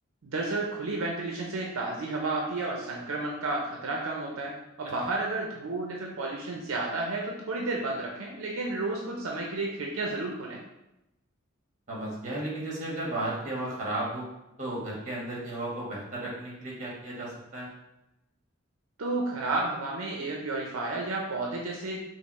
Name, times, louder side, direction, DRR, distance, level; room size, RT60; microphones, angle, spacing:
voice 1, 0.2-10.6 19.0-22.0, right 2 dB, 80° right, -1 dB, 0.5 m, -32 dB
voice 2, 11.9-14.3 14.6-17.7, right 1 dB, 35° right, -4 dB, 1.3 m, -34 dB
5.2 x 2.0 x 3.0 m, 0.90 s
head